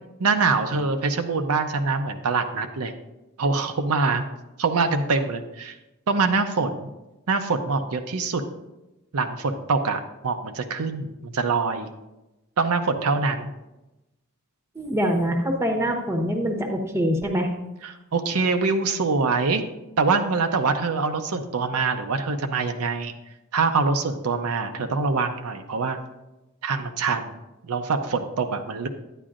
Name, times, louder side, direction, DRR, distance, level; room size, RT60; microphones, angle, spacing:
voice 1, 0.2-2.9 3.4-4.2 4.6-5.7 6.1-6.9 7.3-8.4 9.1-11.9 12.6-13.5 17.8-19.6 20.0-23.1 23.5-26.0 26.6-27.4 27.6-28.9, right 4 dB, 75° right, 6 dB, 0.6 m, -24 dB
voice 2, 14.7-17.5, equal, 10° right, 2 dB, 0.9 m, -24 dB
10.0 x 9.7 x 2.5 m, 1.0 s
head